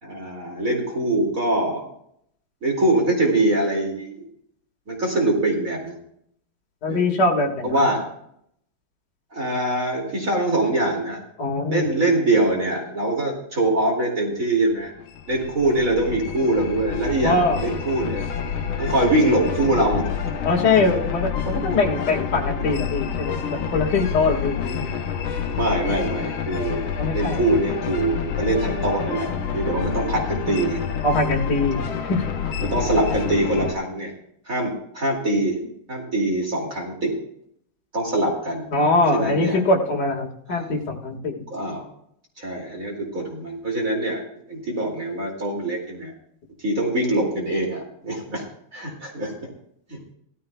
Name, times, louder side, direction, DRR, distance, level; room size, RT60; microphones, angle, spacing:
voice 1, 0.0-1.8 2.6-4.3 4.9-6.0 6.9-7.1 7.6-8.0 9.3-11.2 11.7-14.9 15.3-18.2 18.8-20.1 22.6-22.7 23.5-23.7 25.5-29.3 29.5-30.8 32.6-34.1 34.5-35.6 35.9-37.1 37.9-38.7 39.1-39.6 40.5-40.7 41.5-41.8 42.4-44.2 44.5-46.1 46.6-48.4 48.7-49.3 49.9-50.0, right 2 dB, 40° right, -1 dB, 2.8 m, -23 dB
voice 2, 6.8-7.9 11.4-11.8 17.2-17.7 20.4-24.9 27.0-27.4 31.0-31.8 32.1-32.2 38.7-41.3, left 2 dB, 55° left, 0 dB, 2.5 m, -22 dB
sound 1, 14.8-33.7, left 7 dB, 70° left, 1.8 m, -28 dB
17.0 x 14.0 x 2.3 m, 0.70 s
omnidirectional pair, 2.3 m